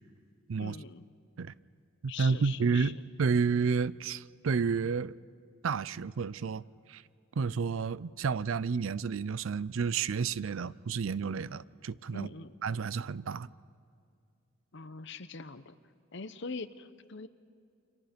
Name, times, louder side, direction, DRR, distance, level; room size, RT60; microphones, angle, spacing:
voice 1, 0.6-1.0 2.1-2.9 12.1-12.5 14.7-15.8 16.1-17.3, left 4 dB, 60° left, 0.8 m, -42 dB
voice 2, 2.0-5.1 5.6-6.6 6.9-7.0 7.4-12.3 12.6-13.5, right 5 dB, 70° right, 0.5 m, -30 dB
29.5 x 25.5 x 5.2 m
head